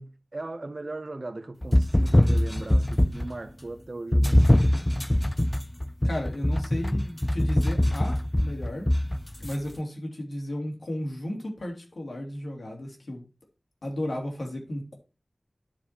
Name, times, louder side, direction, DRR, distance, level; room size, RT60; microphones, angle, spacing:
voice 1, 0.0-4.8, right 2 dB, 55° right, 0.8 m, -38 dB
sound 1, 1.6-3.4 4.1-9.5, left 1 dB, 20° left, 0.3 m, -23 dB
voice 2, 6.0-8.9 9.4-13.2 13.8-14.9, left 1 dB, 85° left, 2.7 m, -34 dB
10.5 x 4.8 x 4.3 m
wide cardioid pair, 60°, 0 cm